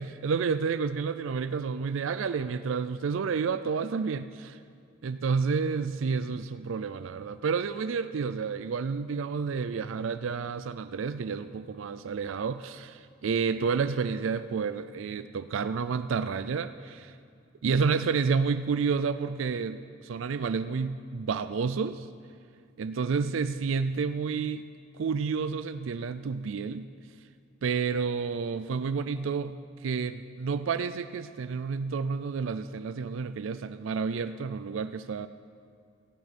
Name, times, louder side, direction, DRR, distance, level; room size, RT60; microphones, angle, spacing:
voice 1, 0.0-4.6 5.0-17.1 17.6-22.1 22.8-24.6 25.0-26.9 27.6-35.3, right 5 dB, 75° right, 12 dB, 0.4 m, -30 dB
16.5 x 15.0 x 4.2 m, 2.3 s
head